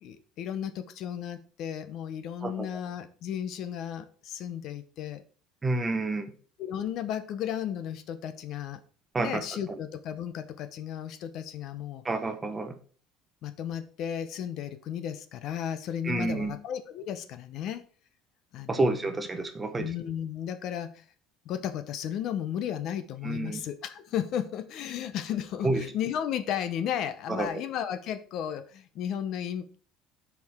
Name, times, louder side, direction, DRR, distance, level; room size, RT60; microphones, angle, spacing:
voice 1, 0.0-5.2 6.6-8.8 9.2-12.0 13.4-17.8 18.5-18.8 19.8-21.0 21.4-29.8, left 9 dB, 45° left, 11 dB, 0.7 m, -34 dB
voice 2, 5.6-6.3 9.1-9.4 12.0-12.7 16.0-16.5 18.7-19.9 23.2-23.6 25.6-25.9 27.3-27.5, right 2 dB, 15° right, 8 dB, 0.9 m, -29 dB
12.5 x 4.7 x 3.6 m, 0.42 s
cardioid pair, 165°, 0 cm